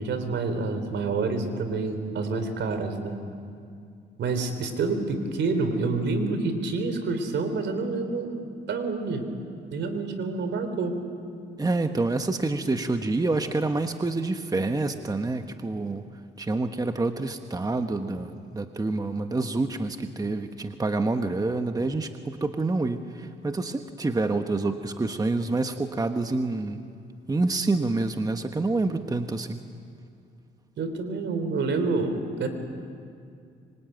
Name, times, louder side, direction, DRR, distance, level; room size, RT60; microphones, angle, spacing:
voice 1, 0.0-3.2 4.2-9.3 9.7-11.0 30.8-32.5, right 3 dB, 65° right, 8 dB, 3.7 m, -28 dB
voice 2, 11.6-16.0 16.4-26.8 27.3-29.6, right 3 dB, 20° right, 7 dB, 1.3 m, -27 dB
25.5 x 24.5 x 9.2 m, 2.3 s
cardioid pair, 90°, 20 cm